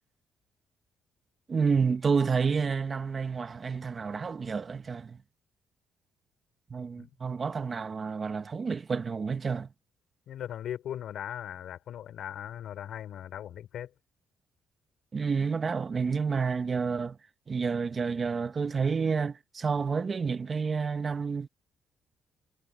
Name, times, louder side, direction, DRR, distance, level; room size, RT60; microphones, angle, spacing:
voice 1, 1.5-5.2 6.7-9.7 15.1-17.2 17.5-21.5, right 5 dB, 40° right, 1.5 m, -29 dB
voice 2, 10.3-13.9, left 10 dB, 70° left, 5.3 m, -39 dB
cardioid pair, 90°, 0 cm